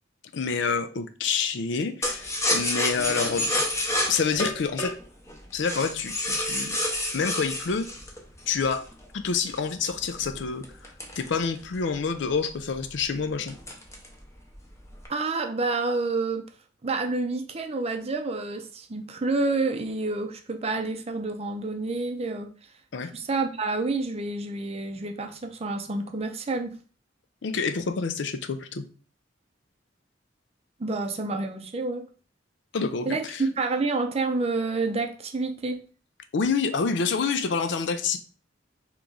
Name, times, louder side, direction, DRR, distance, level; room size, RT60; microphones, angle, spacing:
voice 1, 0.3-3.6 4.1-4.9 5.5-6.8 7.1-7.9 8.5-8.8 9.1-10.6 11.2-13.6 22.9-23.1 27.4-28.8 32.7-33.4 36.3-38.2, left 5 dB, 65° left, 9 dB, 0.5 m, -27 dB
sound 1, 2.0-8.9 9.5-11.9 12.3-12.4 12.7-13.0 13.5-14.2 14.5-15.1, left 1 dB, 15° left, 0.7 m, -29 dB
voice 2, 15.1-16.5 16.8-22.5 23.1-26.7 30.8-32.0 33.1-35.8, right 3 dB, 35° right, 6 dB, 0.5 m, -28 dB
3.6 x 3.0 x 3.8 m, 0.38 s
head